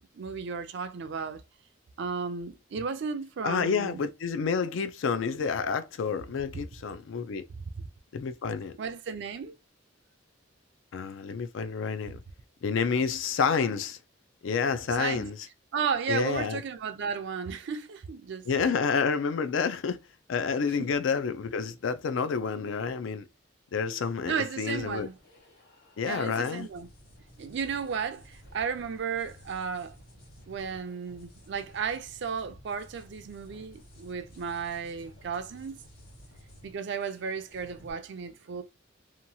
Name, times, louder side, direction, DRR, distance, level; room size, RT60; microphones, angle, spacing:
voice 1, 0.1-1.4 2.0-4.0 6.5-6.6 7.5-7.9 8.8-9.6 15.0-15.3 15.7-18.8 20.8-20.9 24.2-25.2 26.1-26.9 27.4-29.9 30.5-35.8 36.6-38.6, right 6 dB, 60° right, 0.4 m, -34 dB
voice 2, 3.4-7.4 8.1-8.8 10.9-12.2 12.6-14.0 14.4-15.4 16.1-16.6 18.5-20.0 20.3-23.3 23.7-25.1 26.0-26.7, left 5 dB, 70° left, 0.4 m, -29 dB
sound 1, 24.6-37.9, equal, 50° left, 1.1 m, -54 dB
2.8 x 2.2 x 2.7 m
head